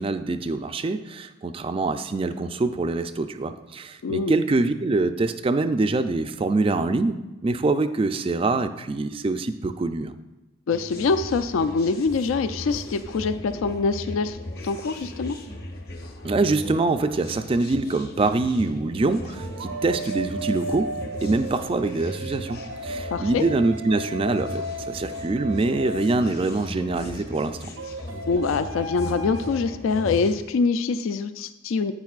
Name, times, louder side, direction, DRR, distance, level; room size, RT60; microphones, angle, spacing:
voice 1, 0.0-7.2 7.4-10.2 16.2-20.9 21.2-27.7, right 3 dB, 25° right, 10 dB, 0.3 m, -24 dB
voice 2, 4.0-4.3 10.7-14.4 14.6-15.4 23.1-23.4 28.3-31.9, left 4 dB, 75° left, 11 dB, 0.4 m, -24 dB
sound 1, 10.7-30.4, left 1 dB, 50° left, 1.0 m, -37 dB
sound 2, 17.7-17.9 19.3-26.7 27.8-29.5, right 1 dB, 70° right, 0.7 m, -35 dB
10.5 x 8.8 x 2.4 m, 1.0 s
head